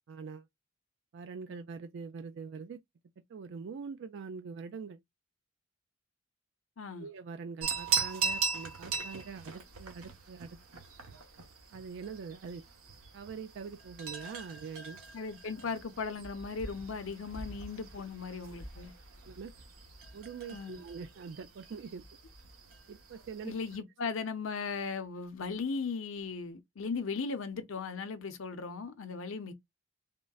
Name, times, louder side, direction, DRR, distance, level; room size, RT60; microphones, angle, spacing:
voice 1, 0.1-0.5 1.1-2.8 3.3-5.0 7.0-10.6 11.7-12.6 13.1-15.0 18.7-18.9 19.3-19.5 20.1-22.0 22.9-23.5, right 5 dB, 55° right, 0.3 m, -43 dB
voice 2, 6.8-7.1 15.1-18.9 20.5-20.8 23.4-29.5, left 4 dB, 65° left, 0.6 m, -37 dB
sound 1, 7.6-23.8, right 6 dB, 80° right, 0.9 m, -40 dB
3.7 x 2.1 x 2.2 m
head